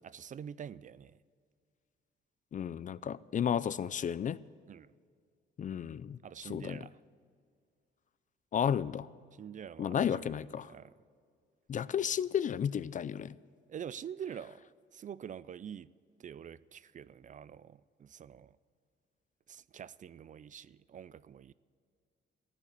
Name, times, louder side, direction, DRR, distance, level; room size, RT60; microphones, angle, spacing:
voice 1, 0.0-1.2 4.7-4.9 6.2-7.0 9.3-10.9 13.7-15.9 16.2-18.6 19.5-21.5, right 8 dB, 40° right, 0.4 m, -46 dB
voice 2, 2.5-4.4 5.6-6.8 8.5-9.1 9.8-10.7 11.7-13.3, left 8 dB, 40° left, 0.4 m, -33 dB
15.0 x 9.8 x 8.2 m
cardioid pair, 90°, 20 cm